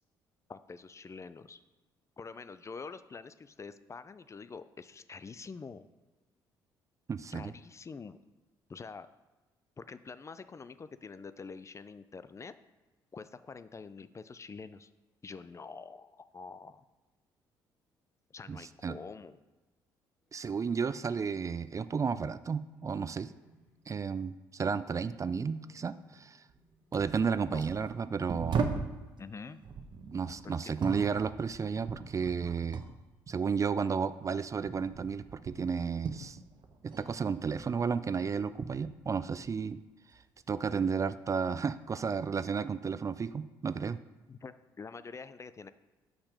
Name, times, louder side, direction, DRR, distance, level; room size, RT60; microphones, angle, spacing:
voice 1, 0.5-1.6 2.2-5.9 7.3-8.2 8.7-9.1 9.8-12.5 13.1-14.9 15.2-16.8 18.3-19.4 27.5-27.7 29.2-29.6 30.4-30.7 40.7-40.9 44.3-45.7, left 4 dB, 30° left, 13 dB, 0.5 m, -46 dB
voice 2, 7.1-7.5 18.5-18.9 20.3-23.3 23.9-26.4 26.9-28.7 30.1-32.8 33.3-36.4 36.8-39.8 40.5-44.0, right 6 dB, 30° right, 14 dB, 0.4 m, -33 dB
sound 1, 20.2-21.2 21.9-31.1, right 1 dB, 10° left, 2.8 m, -63 dB
sound 2, 26.5-26.6 26.9-29.0 29.6-33.0 33.3-37.1 37.3-39.7 40.1-40.8 41.6-41.8, right 5 dB, 50° right, 1.0 m, -40 dB
6.7 x 5.8 x 5.0 m, 1.2 s
hypercardioid pair, 60°, 10 cm